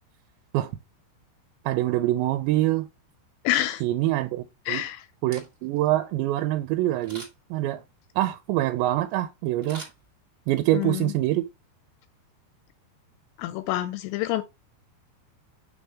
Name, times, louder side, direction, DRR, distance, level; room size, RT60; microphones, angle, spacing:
voice 1, 1.7-2.9 3.8-4.8 5.2-7.2 7.5-7.8 8.2-9.9 10.5-11.4, right 15 dB, 90° right, 2.9 m, -25 dB
voice 2, 3.4-3.8 4.7-5.0 10.7-11.1 13.4-14.4, left 14 dB, 85° left, 2.7 m, -27 dB
Camera, 5.3-5.9 7.0-7.6 9.6-10.6 11.0-11.1, right 2 dB, 60° right, 0.5 m, -44 dB
6.1 x 5.4 x 3.5 m
omnidirectional pair, 5.1 m